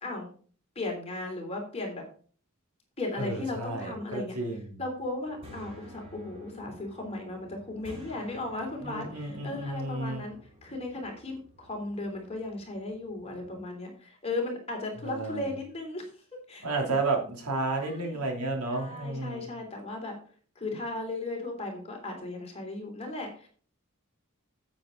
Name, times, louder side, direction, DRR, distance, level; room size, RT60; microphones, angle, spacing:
voice 1, 0.8-2.0 3.0-4.4 4.8-16.0 16.5-16.9 17.7-18.2 18.7-20.2 20.6-23.5, left 2 dB, 25° left, 1 dB, 3.3 m, -36 dB
voice 2, 3.2-4.8 8.8-10.2 15.0-15.5 16.6-19.5, right 2 dB, 85° right, 2 dB, 3.0 m, -32 dB
sound 1, 5.0-13.6, equal, 25° right, 3.3 m, -52 dB
9.5 x 8.4 x 3.9 m, 0.43 s
head